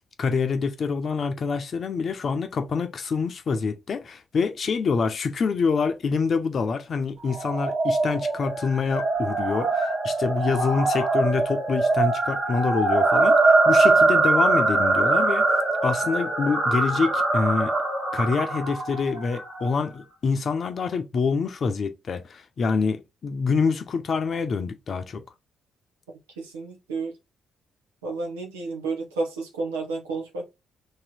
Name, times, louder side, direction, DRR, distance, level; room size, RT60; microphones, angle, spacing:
voice 1, 0.2-15.4 15.8-17.7 18.1-25.2, left 5 dB, 50° left, 0.7 m, -26 dB
sound 1, 7.3-19.7, right 3 dB, 50° right, 1.4 m, -22 dB
voice 2, 26.4-27.1 28.0-30.4, right 3 dB, 80° right, 0.9 m, -31 dB
3.2 x 2.9 x 4.1 m
figure-of-eight pair, 45°, 0 cm